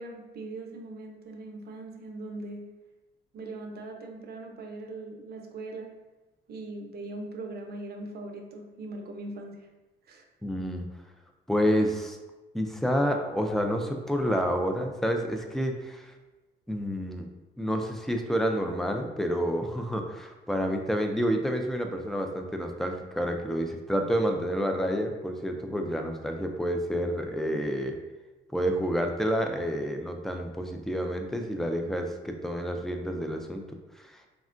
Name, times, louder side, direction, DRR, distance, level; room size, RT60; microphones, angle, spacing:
voice 1, 0.0-2.7 3.3-6.0 6.5-9.7 10.1-10.2, right 2 dB, 50° right, 3 dB, 0.5 m, -40 dB
voice 2, 10.4-10.9 11.5-12.2 12.5-16.1 16.7-17.2 17.6-28.0 28.5-34.2, equal, ahead, 3 dB, 0.3 m, -29 dB
3.5 x 2.1 x 2.5 m, 1.1 s
cardioid pair, 90°, 20 cm